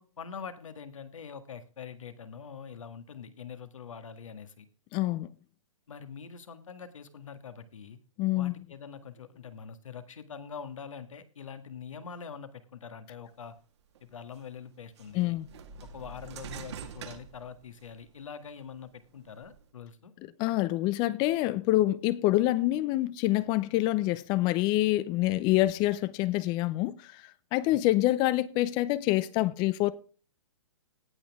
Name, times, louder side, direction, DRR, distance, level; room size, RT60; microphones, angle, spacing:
voice 1, 0.0-4.7 5.9-8.0 8.3-13.6 14.0-15.4 15.9-20.1, left 6 dB, 75° left, 1.8 m, -44 dB
voice 2, 4.9-5.3 8.2-8.5 15.1-15.5 20.4-29.9, left 16 dB, 25° left, 0.6 m, -26 dB
sound 1, 14.0-14.1 15.0-18.1 18.6-19.6, right 6 dB, 55° right, 1.9 m, -45 dB
18.0 x 6.1 x 3.6 m
hypercardioid pair, 135°, 17 cm